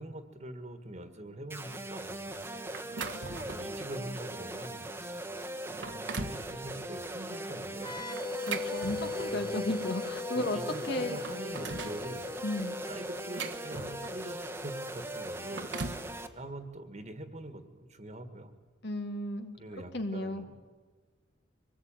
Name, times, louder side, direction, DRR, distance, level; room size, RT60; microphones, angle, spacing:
voice 1, 0.0-2.8 3.4-4.9 5.8-7.9 9.1-9.6 10.3-12.3 12.6-15.8 16.4-18.5 19.5-20.5, right 1 dB, 35° right, 9 dB, 1.8 m, -44 dB
sound 1, 1.5-16.3, right 1 dB, 10° right, 1.3 m, -40 dB
sound 2, 2.7-3.8 4.3-4.5 5.1-5.2 5.6-6.5 8.2-9.5 10.5-10.6 11.0-12.0 12.9-14.3 15.3-16.1, right 4 dB, 70° right, 1.5 m, -40 dB
sound 3, 7.8-15.3, left 4 dB, 25° left, 2.0 m, -40 dB
voice 2, 8.4-10.6 10.9-11.2 12.4-12.8 18.8-19.6 19.9-20.5, left 1 dB, 60° left, 6 dB, 2.1 m, -34 dB
24.5 x 19.0 x 9.1 m, 1.4 s
head